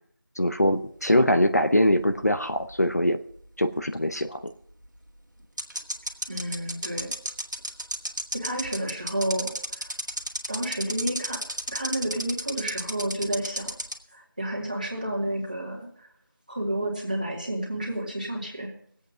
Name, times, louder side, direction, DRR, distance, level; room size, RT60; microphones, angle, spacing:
voice 1, 0.4-3.2 3.6-4.4, left 1 dB, 50° left, 8 dB, 0.8 m, -22 dB
sound 1, 1.1-2.6 2.9-3.0 4.8-4.9 5.6-14.0, right 1 dB, 60° right, 1.9 m, -32 dB
voice 2, 6.3-7.1 8.3-9.9 10.5-11.4 11.7-13.7 14.1-16.1 16.5-18.7, right 1 dB, 25° right, -2 dB, 2.3 m, -30 dB
20.0 x 8.3 x 5.4 m, 0.64 s
figure-of-eight pair, 175°, 11 cm